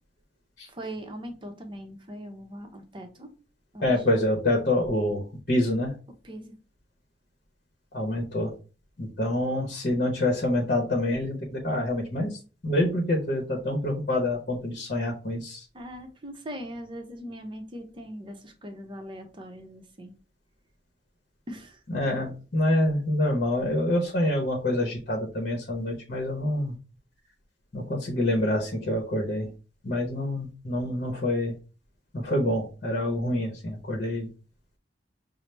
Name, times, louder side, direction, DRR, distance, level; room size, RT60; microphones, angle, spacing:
voice 1, 0.6-3.3 3.7-4.0 6.2-6.6 15.7-20.1 21.5-21.8, equal, 30° right, 0.7 m, -40 dB
voice 2, 3.8-5.9 7.9-8.5 9.0-12.3 12.6-15.6 21.9-26.7 27.7-29.5 29.8-31.5 32.1-34.3, left 1 dB, 50° left, 0.9 m, -26 dB
5.5 x 2.0 x 3.2 m
head